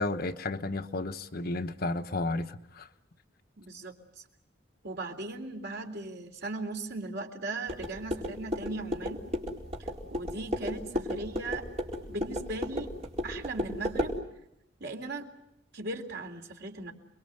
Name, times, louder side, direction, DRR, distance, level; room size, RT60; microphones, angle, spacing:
voice 1, 0.0-2.9, left 2 dB, 55° left, 7 dB, 1.1 m, -32 dB
voice 2, 3.6-3.9 4.8-9.2 10.1-11.6 12.1-12.9 13.2-14.2 14.8-15.3 15.7-16.9, right 2 dB, 60° right, 3 dB, 3.5 m, -38 dB
sound 1, 7.7-14.2, equal, 35° right, 4.5 m, -34 dB
29.0 x 22.5 x 7.9 m, 0.81 s
head